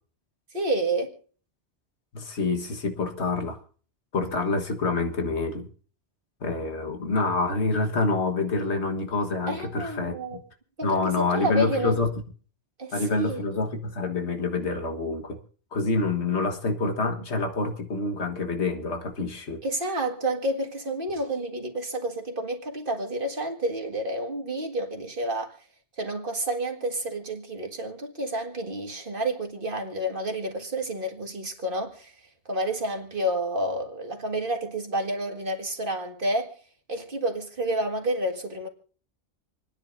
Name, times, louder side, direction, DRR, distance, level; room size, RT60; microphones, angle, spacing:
voice 1, 0.5-1.1 9.5-10.4 10.8-12.0 12.8-13.4 19.6-25.6 26.0-32.1 32.5-36.5 36.9-38.7, right 1 dB, 50° right, 2.0 m, -29 dB
voice 2, 2.1-3.6 4.1-5.7 6.4-10.4 10.8-12.1 12.9-15.4 15.7-19.6, left 3 dB, 75° left, 1.8 m, -27 dB
28.0 x 10.0 x 2.6 m
omnidirectional pair, 1.1 m